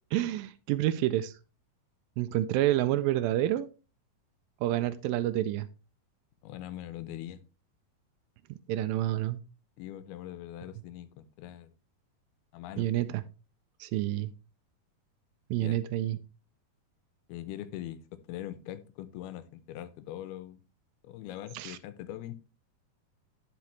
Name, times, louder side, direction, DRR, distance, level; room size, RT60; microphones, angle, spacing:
voice 1, 0.1-1.3 2.2-3.7 4.6-5.7 8.7-9.4 12.8-13.2 13.8-14.3 15.5-16.2 21.6-21.8, right 14 dB, 80° right, 13 dB, 2.1 m, -28 dB
voice 2, 6.4-7.4 9.8-11.7 12.5-12.9 15.6-15.8 17.3-20.6 21.0-22.4, left 12 dB, 85° left, 13 dB, 2.6 m, -42 dB
10.5 x 5.6 x 3.1 m, 0.33 s
omnidirectional pair, 4.5 m